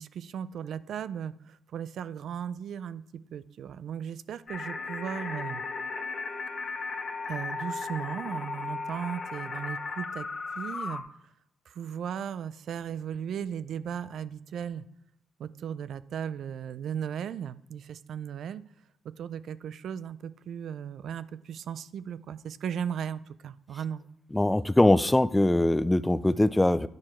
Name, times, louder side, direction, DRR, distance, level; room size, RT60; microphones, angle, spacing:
voice 1, 0.0-5.6 7.3-10.3 10.6-11.1 11.7-14.8 15.4-18.6 19.0-24.0, right 8 dB, 70° right, 15 dB, 0.3 m, -36 dB
sound 1, 4.5-11.0, left 4 dB, 45° left, 0.9 m, -36 dB
voice 2, 24.3-26.9, left 1 dB, 10° left, 16 dB, 0.3 m, -22 dB
9.6 x 4.6 x 4.4 m, 0.77 s
cardioid pair, 70°, 0 cm